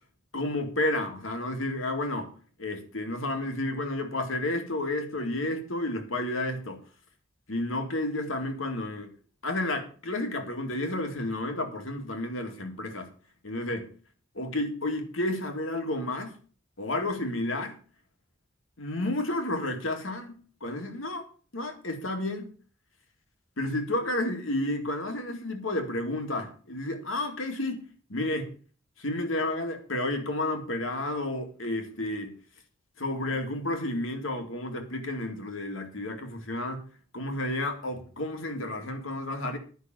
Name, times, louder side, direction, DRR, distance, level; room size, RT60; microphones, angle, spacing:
voice 1, 0.3-2.3 2.6-6.8 7.5-9.1 9.4-13.1 13.4-13.9 14.3-16.4 16.8-17.8 18.8-21.3 21.5-22.5 23.6-28.5 29.0-32.3 33.0-36.9 37.1-39.6, left 1 dB, 85° left, 2.2 m, -31 dB
11.5 x 5.9 x 7.6 m
head